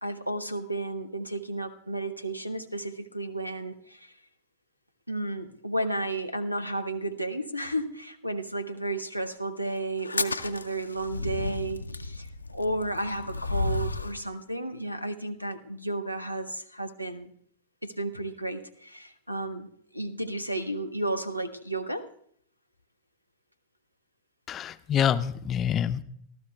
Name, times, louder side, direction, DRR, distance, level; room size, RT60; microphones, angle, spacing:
voice 1, 0.0-4.1 5.1-17.3 17.8-22.1, right 2 dB, 90° right, 13 dB, 0.7 m, -33 dB
sound 1, 10.0-14.2, left 3 dB, 80° left, 0.5 m, -32 dB
voice 2, 24.5-26.0, left 9 dB, 30° left, 13 dB, 0.5 m, -26 dB
25.0 x 14.0 x 2.3 m, 0.65 s
figure-of-eight pair, 90°, 0 cm